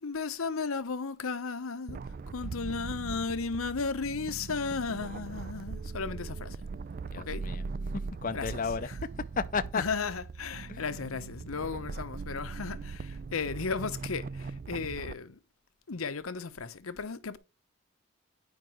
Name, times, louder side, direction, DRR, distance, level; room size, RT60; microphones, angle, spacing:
voice 1, 0.0-6.6 7.2-7.5 8.3-8.5 9.7-15.4 15.9-17.4, left 4 dB, 85° left, 0.9 m, -35 dB
sound 1, 1.9-15.1, right 4 dB, 45° right, 0.4 m, -40 dB
voice 2, 7.1-7.6 7.9-9.8 10.7-10.8, left 5 dB, 40° left, 0.5 m, -33 dB
9.6 x 5.1 x 4.5 m
head